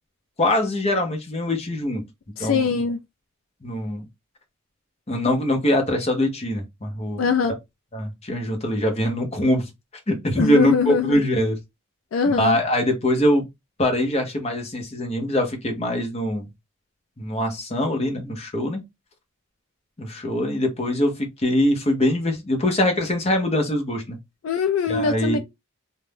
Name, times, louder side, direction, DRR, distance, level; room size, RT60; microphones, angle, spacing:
voice 1, 0.4-2.0 2.4-2.8 3.6-4.0 5.1-7.2 7.9-9.7 10.1-11.6 12.4-13.5 13.8-16.4 17.2-18.8 20.0-24.2 24.9-25.4, left 1 dB, 30° left, 0.8 m, -23 dB
voice 2, 2.4-3.0 7.2-7.5 10.4-11.2 12.1-12.6 24.4-25.4, left 5 dB, 70° left, 0.3 m, -22 dB
2.5 x 2.1 x 3.3 m
head